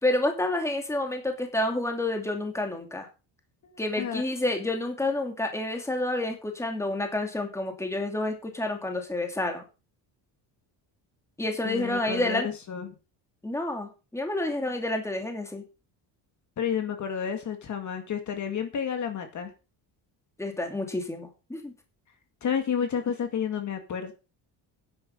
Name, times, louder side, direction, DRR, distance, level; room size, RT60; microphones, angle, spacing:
voice 1, 0.0-3.1 3.8-9.6 11.4-12.5 13.4-15.6 20.4-21.7, left 1 dB, 5° left, 3 dB, 2.5 m, -29 dB
voice 2, 3.6-4.2 11.6-12.9 16.6-19.5 22.4-24.1, left 7 dB, 40° left, 6 dB, 2.0 m, -31 dB
10.5 x 10.0 x 5.4 m, 0.31 s
cardioid pair, 165°, 44 cm